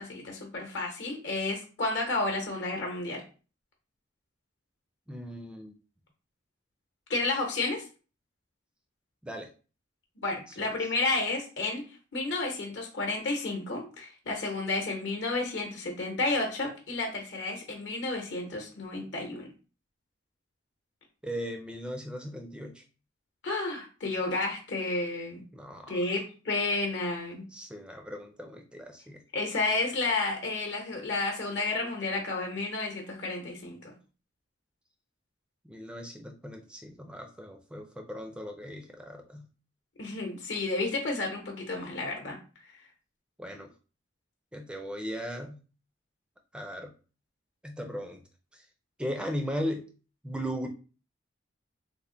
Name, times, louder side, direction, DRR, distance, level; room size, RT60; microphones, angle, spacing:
voice 1, 0.0-3.2 7.1-7.8 10.2-11.8 12.1-19.5 23.4-25.4 25.9-27.5 29.3-33.9 40.0-42.4, left 2 dB, 65° left, 2 dB, 0.9 m, -31 dB
voice 2, 5.1-5.7 9.2-9.5 10.5-10.7 21.2-22.8 25.5-26.1 27.5-29.2 35.6-39.5 43.4-43.7 44.5-45.6 46.5-46.9 47.6-48.2 48.5-48.6 49.0-49.9 50.2-50.7, equal, 5° right, 4 dB, 0.4 m, -37 dB
3.3 x 2.1 x 3.7 m, 0.36 s
head